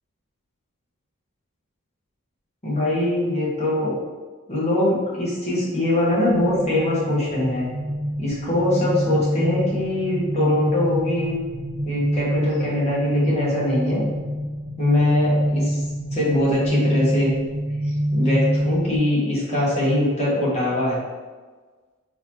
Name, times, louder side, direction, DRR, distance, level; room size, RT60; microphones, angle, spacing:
voice 1, 2.6-4.0 4.5-7.7 8.2-11.3 11.8-14.0 14.8-15.8 16.1-17.3 17.8-21.0, left 1 dB, 30° left, -7 dB, 1.3 m, -22 dB
sound 1, 6.2-19.0, equal, 55° right, 0.7 m, -26 dB
4.1 x 2.8 x 2.9 m, 1.4 s
head